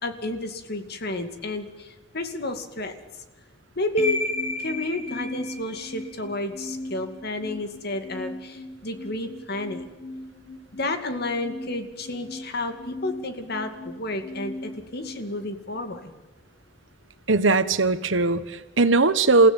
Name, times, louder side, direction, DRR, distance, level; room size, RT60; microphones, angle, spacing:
voice 1, 0.0-3.0 3.8-4.2 4.6-9.8 10.8-16.1, left 2 dB, 55° left, 7 dB, 2.5 m, -31 dB
sound 1, 4.0-16.0, left 1 dB, 35° left, 2.2 m, -36 dB
voice 2, 17.3-19.5, right 3 dB, 85° right, 12 dB, 1.4 m, -19 dB
28.5 x 16.0 x 9.1 m, 1.3 s
head